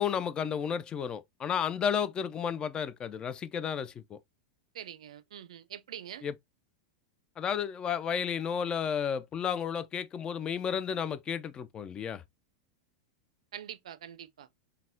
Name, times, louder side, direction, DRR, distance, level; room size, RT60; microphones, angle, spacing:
voice 1, 0.0-4.2 6.2-6.4 7.4-12.2, left 7 dB, 25° left, 0.4 m, -32 dB
voice 2, 4.7-6.3 13.5-14.5, right 10 dB, 75° right, 0.4 m, -44 dB
3.9 x 2.2 x 2.5 m
hypercardioid pair, 105°, 3 cm